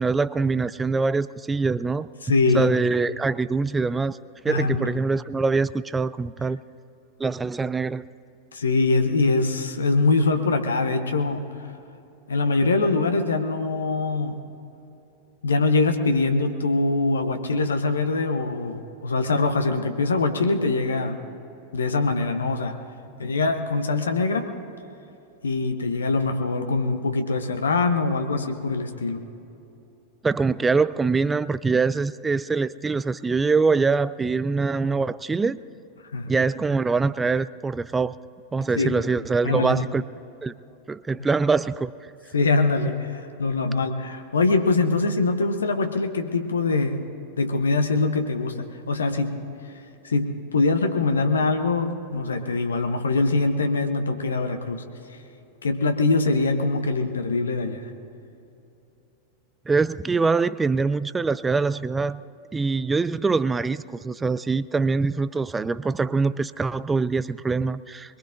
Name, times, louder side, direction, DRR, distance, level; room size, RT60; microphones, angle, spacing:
voice 1, 0.0-2.1 2.5-4.2 4.4-6.6 7.2-8.0 30.2-35.6 36.3-38.1 38.5-40.0 40.4-40.5 40.9-41.9 59.7-62.2 62.5-68.2, right 4 dB, 15° right, 16 dB, 0.3 m, -24 dB
voice 2, 2.2-2.7 4.5-4.9 8.5-11.7 12.3-14.4 15.4-21.2 21.7-22.8 23.2-24.5 25.4-29.2 36.1-36.3 38.7-39.0 39.4-39.8 42.3-47.0 47.4-49.4 50.0-54.8 55.6-57.9, left 3 dB, 70° left, 6 dB, 0.9 m, -23 dB
22.5 x 21.5 x 2.6 m, 2.9 s
figure-of-eight pair, 90°, 0 cm